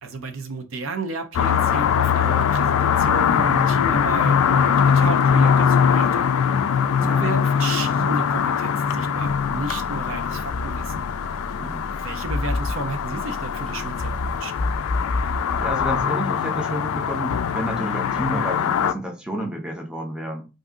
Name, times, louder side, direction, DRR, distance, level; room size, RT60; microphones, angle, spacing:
voice 1, 0.0-6.3 7.0-11.0 12.0-14.5, right 3 dB, 65° right, 0.6 m, -32 dB
sound 1, 1.3-18.9, left 7 dB, 90° left, 0.3 m, -22 dB
voice 2, 6.9-7.3 11.6-11.9 15.2-15.3 15.6-20.5, equal, 5° right, 0.6 m, -30 dB
sound 2, 9.2-16.1, left 2 dB, 55° left, 0.6 m, -30 dB
2.6 x 2.5 x 3.6 m
head